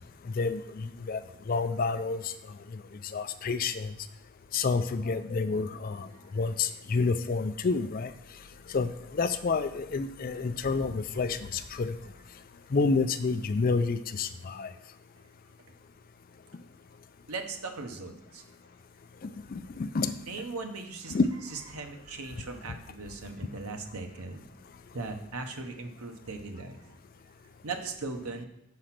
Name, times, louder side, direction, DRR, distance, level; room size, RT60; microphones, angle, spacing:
voice 1, 0.3-1.2 1.5-2.2 3.1-3.9 4.5-6.1 6.3-8.1 8.7-11.9 12.7-14.7 19.2-20.1 21.1-21.3, left 4 dB, 40° left, 11 dB, 0.4 m, -29 dB
voice 2, 17.3-18.4 20.3-21.2 21.5-24.4 24.9-26.8 27.6-28.4, right 3 dB, 85° right, 5 dB, 1.0 m, -38 dB
6.4 x 4.9 x 5.8 m, 0.84 s
head